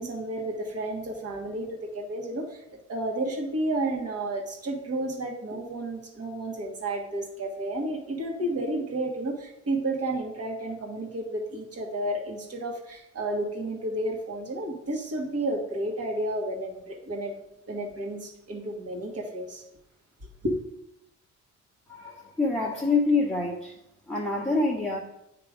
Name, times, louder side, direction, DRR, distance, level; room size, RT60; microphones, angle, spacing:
voice 1, 0.0-2.6 2.9-17.4 17.7-19.6 20.4-20.6, right 1 dB, 50° right, 1 dB, 1.6 m, -31 dB
voice 2, 21.9-23.8 24.1-25.0, left 3 dB, 5° left, -3 dB, 0.9 m, -26 dB
8.6 x 2.9 x 5.1 m, 0.83 s
cardioid pair, 90°, 30 cm